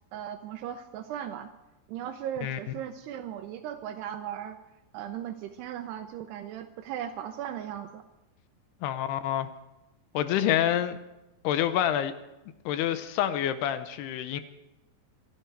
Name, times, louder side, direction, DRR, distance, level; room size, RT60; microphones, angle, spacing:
voice 1, 0.1-1.5 1.9-4.6 4.9-8.0 10.4-10.7, right 10 dB, 80° right, 7 dB, 2.7 m, -37 dB
voice 2, 8.8-9.5 10.1-11.0 11.4-12.1 12.7-14.4, left 11 dB, 80° left, 11 dB, 2.7 m, -27 dB
27.5 x 10.5 x 4.6 m, 0.97 s
omnidirectional pair, 4.9 m